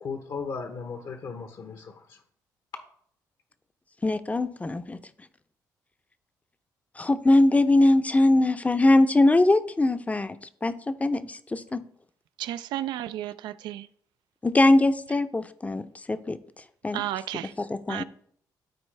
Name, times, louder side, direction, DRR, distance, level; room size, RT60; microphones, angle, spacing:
voice 1, 0.0-2.2, left 5 dB, 60° left, 7 dB, 1.0 m, -36 dB
voice 2, 4.0-5.0 7.0-11.9 14.4-16.4 16.8-17.0 17.6-18.0, left 2 dB, 20° left, 12 dB, 0.6 m, -22 dB
voice 3, 12.4-13.9 16.9-17.5 17.9-18.0, right 13 dB, 80° right, 14 dB, 0.4 m, -32 dB
12.5 x 4.5 x 3.3 m, 0.62 s
supercardioid pair, 70°, 8 cm